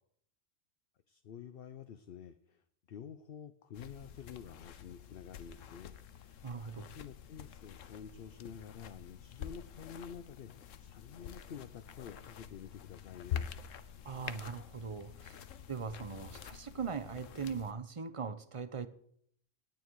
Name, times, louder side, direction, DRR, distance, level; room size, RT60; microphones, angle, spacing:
voice 1, 1.1-13.5, left 7 dB, 55° left, 11 dB, 0.8 m, -50 dB
sound 1, 3.7-17.7, left 9 dB, 85° left, 1.2 m, -47 dB
voice 2, 6.4-7.0 14.0-15.4 15.7-18.9, right 5 dB, 30° right, 13 dB, 0.8 m, -40 dB
18.5 x 9.0 x 4.7 m, 0.66 s
omnidirectional pair, 1.3 m